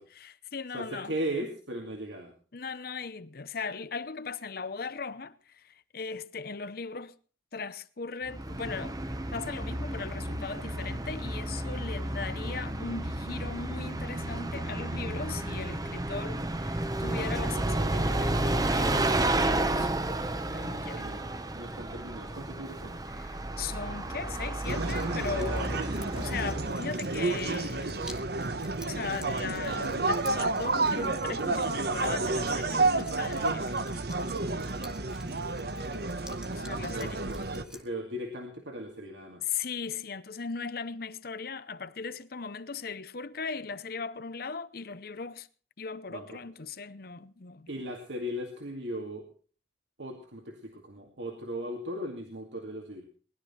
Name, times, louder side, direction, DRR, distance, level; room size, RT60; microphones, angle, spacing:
voice 1, 0.0-1.1 2.5-7.1 7.5-9.0 9.3-19.9 20.5-21.1 23.1-25.8 26.1-28.0 28.9-33.8 36.5-37.2 39.4-45.5 45.8-47.7, left 5 dB, 55° left, 0.8 m, -38 dB
voice 2, 0.7-2.3 20.9-23.0 36.9-39.4 46.1-46.3 47.7-49.3 50.0-53.0, equal, 80° right, 2.3 m, -37 dB
Bus, 8.2-26.8, right 1 dB, 20° right, 0.9 m, -32 dB
Drip, 24.6-37.8, equal, 5° right, 1.6 m, -52 dB
sound 1, 24.7-37.6, right 3 dB, 60° right, 1.1 m, -30 dB
20.0 x 12.0 x 4.4 m
head